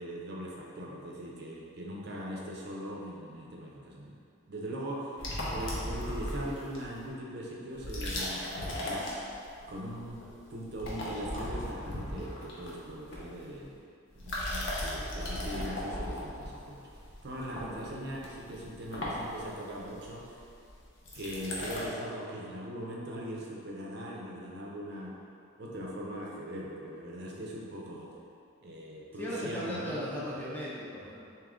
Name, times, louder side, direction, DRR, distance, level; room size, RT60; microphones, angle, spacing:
voice 1, 0.0-4.2 4.5-5.2 5.5-9.3 9.7-10.2 10.5-13.8 14.1-20.3 21.1-25.1 25.6-28.1 28.6-30.0, equal, 50° right, -3 dB, 0.5 m, -40 dB
sound 1, 5.2-7.0 7.7-9.7 10.0-10.4 10.6-13.6 14.1-21.9, left 1 dB, 55° left, 0.7 m, -37 dB
voice 2, 29.2-31.2, equal, 10° left, -7 dB, 0.5 m, -36 dB
3.6 x 2.8 x 3.6 m, 2.5 s
head